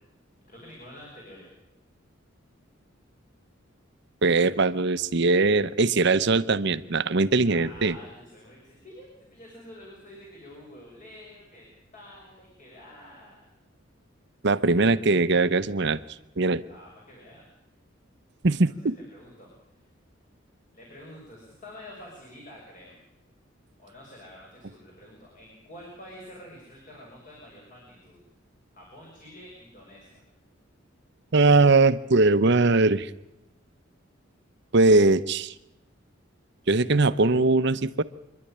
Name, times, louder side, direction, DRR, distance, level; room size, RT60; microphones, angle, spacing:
voice 1, 0.5-1.5 7.4-11.7 11.9-13.4 16.6-17.5 18.6-18.7 19.1-19.5 20.7-23.0 23.8-28.2 28.7-30.2, left 1 dB, 40° left, -2 dB, 6.3 m, -48 dB
voice 2, 4.2-8.0 14.4-16.0 16.4-16.6 18.4-18.9 31.3-33.1 34.7-35.5 36.7-38.0, right 3 dB, 60° right, 13 dB, 0.8 m, -21 dB
26.5 x 11.5 x 10.0 m, 0.93 s
head